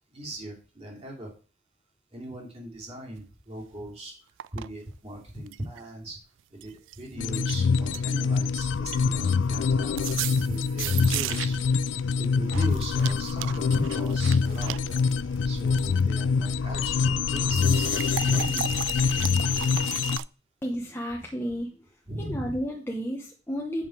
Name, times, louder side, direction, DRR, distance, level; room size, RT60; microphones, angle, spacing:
voice 1, 0.1-1.3 2.1-4.1 4.5-6.2 6.5-10.0 10.4-11.6 12.1-14.9 15.4-18.8 22.0-22.6, right 1 dB, 30° right, -1 dB, 2.8 m, -38 dB
sound 1, 3.2-3.3 4.4-4.7 5.1-5.8 6.6-7.0 7.4-7.6 7.9-8.5 8.7-9.6 10.0-11.7 12.5-16.0 17.4-20.2, right 13 dB, 80° right, 0.3 m, -36 dB
sound 2, 7.2-20.2, left 5 dB, 75° left, 0.4 m, -25 dB
sound 3, 14.5-19.8, left 1 dB, 90° left, 1.2 m, -41 dB
voice 2, 20.6-21.7 22.2-23.9, equal, 10° left, -2 dB, 0.9 m, -32 dB
7.6 x 5.7 x 4.5 m, 0.36 s
head